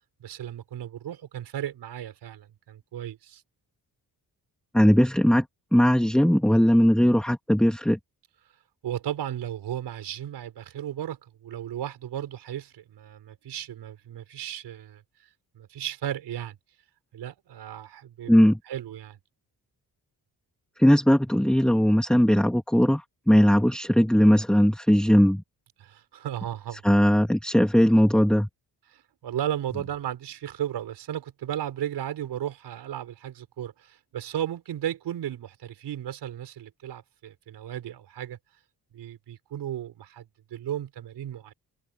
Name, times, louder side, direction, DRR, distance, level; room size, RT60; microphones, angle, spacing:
voice 1, 0.2-3.4 8.8-15.0 15.5-16.6 17.1-18.3 18.7-19.2 25.8-26.8 28.9-38.4 38.9-41.5, right 11 dB, 90° right, 4.9 m, -35 dB
voice 2, 4.7-5.5 5.7-8.0 18.3-18.6 20.8-25.4 26.8-28.5, equal, ahead, 2.3 m, -19 dB
open air
cardioid pair, 65°, 39 cm